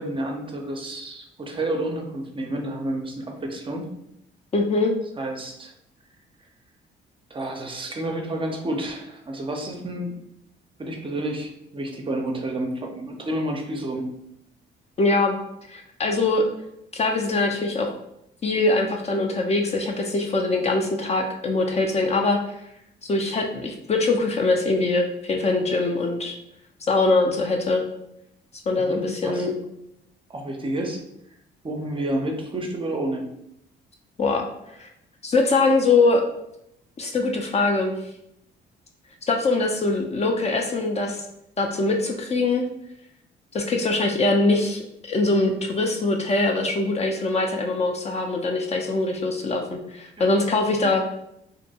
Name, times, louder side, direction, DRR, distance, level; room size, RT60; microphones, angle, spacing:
voice 1, 0.0-3.9 5.2-5.7 7.3-10.2 10.8-14.1 28.7-29.5 30.3-31.0 31.6-33.3 50.2-50.3, right 1 dB, 25° right, 2 dB, 0.5 m, -30 dB
voice 2, 4.5-4.9 15.0-15.4 15.7-16.4 16.9-17.9 18.4-22.5 23.1-26.3 26.9-27.8 28.7-29.5 34.2-34.5 34.8-34.9 35.2-36.3 37.0-38.0 39.3-41.2 41.6-42.7 43.5-51.1, left 3 dB, 35° left, 2 dB, 0.4 m, -22 dB
2.5 x 2.2 x 2.7 m, 0.79 s
cardioid pair, 90°, 20 cm